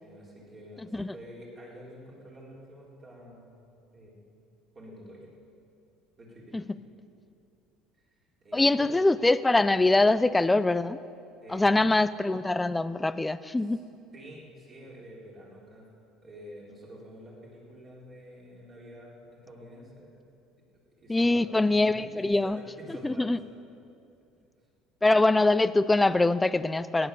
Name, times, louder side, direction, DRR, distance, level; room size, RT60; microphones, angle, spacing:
voice 1, 0.0-3.6 3.9-4.2 4.7-5.3 6.2-6.8 8.0-8.1 8.4-8.9 9.9-10.0 11.4-11.8 13.6-13.8 14.1-15.9 16.2-20.1 21.0-23.6, equal, 30° right, -4 dB, 4.1 m, -48 dB
voice 2, 8.5-11.0 11.5-13.8 21.1-22.6 23.0-23.4 25.0-27.1, left 2 dB, 10° left, 15 dB, 0.4 m, -23 dB
17.0 x 9.9 x 6.9 m, 2.6 s
cardioid pair, 125°, 0 cm